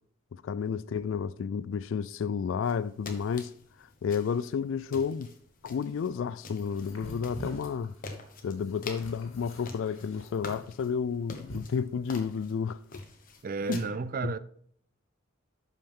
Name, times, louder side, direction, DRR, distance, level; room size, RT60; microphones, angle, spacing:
voice 1, 0.3-3.5 4.0-5.3 5.6-7.9 8.4-12.8 13.7-13.8, left 6 dB, 70° left, 0.3 m, -31 dB
sound 1, 2.6-13.8, left 3 dB, 45° left, 1.2 m, -47 dB
sound 2, 6.5-12.3, equal, 85° left, 2.3 m, -45 dB
voice 2, 13.4-14.4, right 4 dB, 45° right, 0.4 m, -32 dB
12.0 x 5.4 x 3.6 m
head